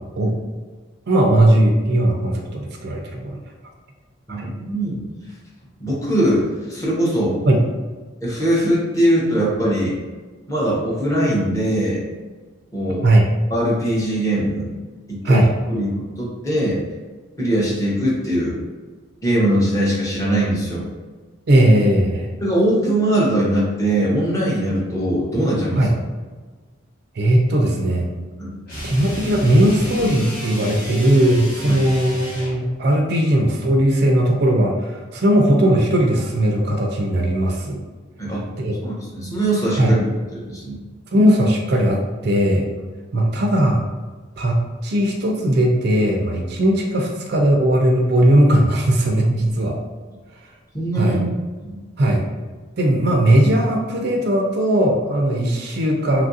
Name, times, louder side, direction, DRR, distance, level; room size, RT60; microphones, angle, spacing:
voice 1, 1.1-3.4 4.3-4.5 7.5-7.6 13.0-13.3 15.2-15.5 21.5-22.3 25.8-25.9 27.2-28.1 28.8-37.8 38.6-38.7 39.8-40.0 41.1-42.7 43.1-43.8 44.4-49.8 51.0-51.2 52.0-52.2 52.8-56.3, right 1 dB, 50° right, 2 dB, 0.4 m, -18 dB
voice 2, 4.3-5.0 5.8-7.3 8.2-10.0 10.5-12.0 12.7-13.0 13.5-14.7 15.1-16.8 17.4-18.6 19.2-20.9 22.4-25.9 28.4-28.5 31.7-31.8 38.2-38.4 38.8-40.0 40.3-40.8 50.7-51.2 51.6-51.8, right 1 dB, 15° left, -6 dB, 0.7 m, -21 dB
sound 1, 28.7-32.7, equal, 50° left, 1.0 m, -33 dB
3.0 x 2.5 x 2.6 m, 1.3 s
head